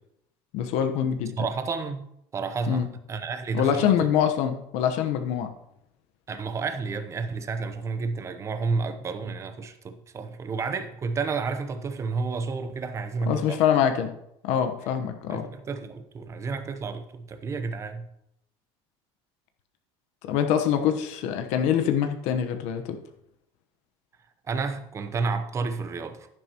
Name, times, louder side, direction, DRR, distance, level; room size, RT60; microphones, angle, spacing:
voice 1, 0.5-1.3 2.7-2.9 3.5-5.5 13.3-14.1 14.4-15.5 20.2-23.0, left 9 dB, 70° left, 1.1 m, -24 dB
voice 2, 1.4-2.1 2.3-4.1 6.3-13.6 15.3-18.1 24.5-26.3, right 4 dB, 25° right, 0.8 m, -31 dB
11.0 x 10.0 x 3.0 m
cardioid pair, 145°, 12 cm